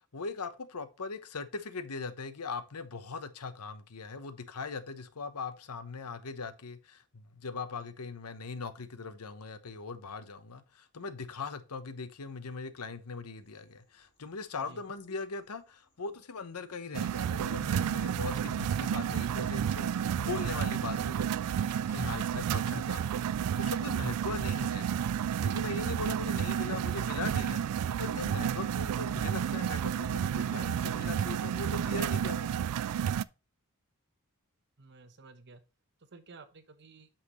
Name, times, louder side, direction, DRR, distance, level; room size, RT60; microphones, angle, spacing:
voice 1, 0.1-21.3 21.9-32.6, left 4 dB, 85° left, 0.9 m, -40 dB
sound 1, 13.4-32.0, left 2 dB, 55° left, 2.9 m, -68 dB
sound 2, 16.9-33.2, right 8 dB, 90° right, 0.3 m, -31 dB
voice 2, 34.8-35.6 36.1-37.1, right 3 dB, 50° right, 1.1 m, -53 dB
8.4 x 5.9 x 3.1 m
head